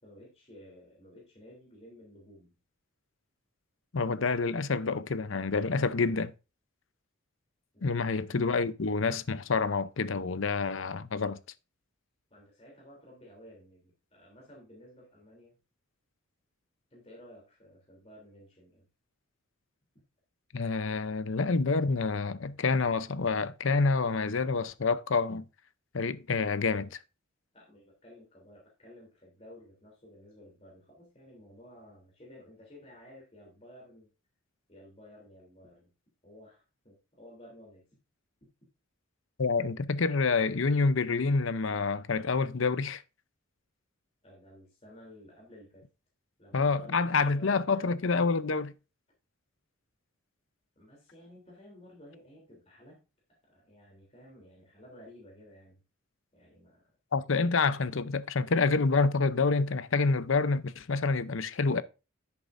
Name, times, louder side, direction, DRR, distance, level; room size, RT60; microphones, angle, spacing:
voice 1, 0.0-2.6 7.7-8.2 12.3-15.6 16.9-18.9 27.5-34.1 34.7-35.9 36.2-38.0 44.2-45.9 46.4-48.3 50.7-53.0 53.4-55.8 56.3-56.9, equal, 30° left, 3.3 m, -54 dB
voice 2, 3.9-6.3 7.8-11.4 20.5-25.4 25.9-27.0 39.4-43.0 46.5-48.7 57.1-61.8, left 4 dB, 65° left, 0.7 m, -28 dB
10.5 x 8.4 x 2.6 m
head